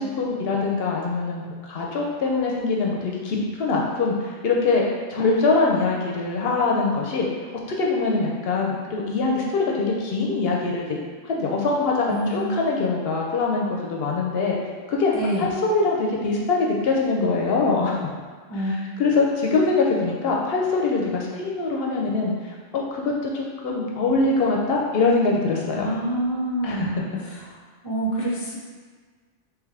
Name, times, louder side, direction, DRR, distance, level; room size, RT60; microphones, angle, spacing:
voice 1, 0.0-4.8 5.1-7.3 7.7-11.0 11.2-14.6 14.9-18.0 19.0-25.9 26.6-26.9, left 3 dB, 70° left, -2 dB, 0.8 m, -23 dB
voice 2, 12.1-12.5 15.1-15.5 18.5-18.7 25.8-27.0 27.3-27.4 27.8-28.6, right 1 dB, 30° left, -4 dB, 0.7 m, -26 dB
3.6 x 3.1 x 3.2 m, 1.5 s
omnidirectional pair, 1.1 m